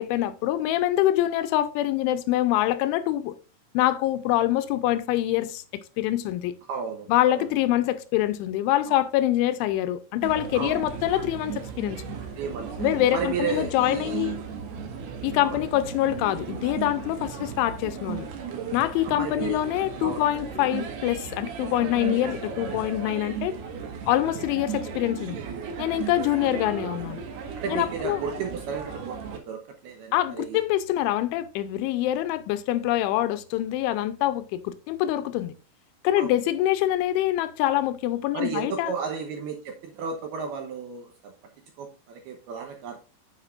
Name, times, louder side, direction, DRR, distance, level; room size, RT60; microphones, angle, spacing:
voice 1, 0.0-3.3 3.7-6.5 7.1-12.2 12.8-14.4 15.2-18.3 18.7-23.5 24.1-25.4 25.8-27.2 27.7-28.2 30.1-35.5 36.0-38.9, left 13 dB, 80° left, 2.9 m, -25 dB
voice 2, 6.7-7.4 8.9-9.0 10.5-10.8 12.4-14.3 15.4-15.6 19.0-19.6 20.0-20.3 27.6-30.6 36.2-36.3 38.3-41.3 41.8-43.0, right 6 dB, 80° right, 2.3 m, -33 dB
sound 1, 10.2-29.4, right 6 dB, 65° right, 3.2 m, -35 dB
9.5 x 8.1 x 2.5 m
omnidirectional pair, 5.8 m